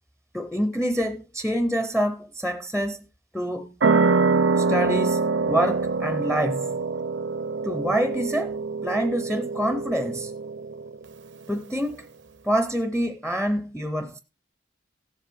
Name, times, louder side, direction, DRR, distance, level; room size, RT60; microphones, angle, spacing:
voice 1, 0.3-3.1 3.3-3.7 4.6-6.8 7.6-8.6 8.8-10.3 11.5-12.1 12.4-14.2, equal, 5° left, 0.5 m, -26 dB
sound 1, 3.8-11.0, right 4 dB, 60° right, 0.5 m, -25 dB
16.5 x 7.4 x 3.4 m
head